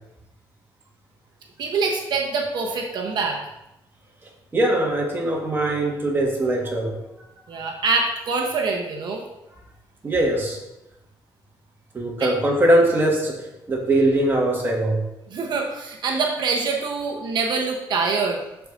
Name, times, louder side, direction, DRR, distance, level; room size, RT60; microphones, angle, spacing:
voice 1, 1.6-3.4 7.5-9.2 12.2-12.3 15.3-18.4, right 4 dB, 60° right, 1 dB, 0.9 m, -25 dB
voice 2, 4.5-7.0 10.0-10.6 11.9-15.0, right 1 dB, 25° right, -1 dB, 1.6 m, -21 dB
11.5 x 4.7 x 2.6 m, 0.91 s
cardioid pair, 145°, 8 cm